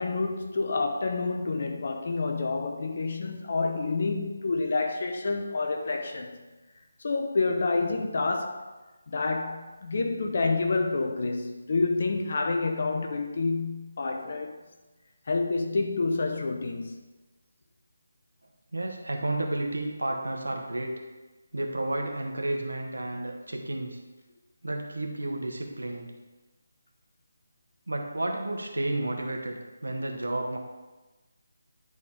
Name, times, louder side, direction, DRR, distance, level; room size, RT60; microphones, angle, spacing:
voice 1, 0.0-6.4 7.0-8.6 9.1-14.5 15.3-17.0, left 3 dB, 45° left, 1.0 m, -28 dB
voice 2, 18.7-20.9 21.5-24.0 24.6-26.1 27.9-30.6, right 1 dB, 70° right, 1.4 m, -31 dB
10.5 x 4.2 x 4.9 m
figure-of-eight pair, 150°, 0 cm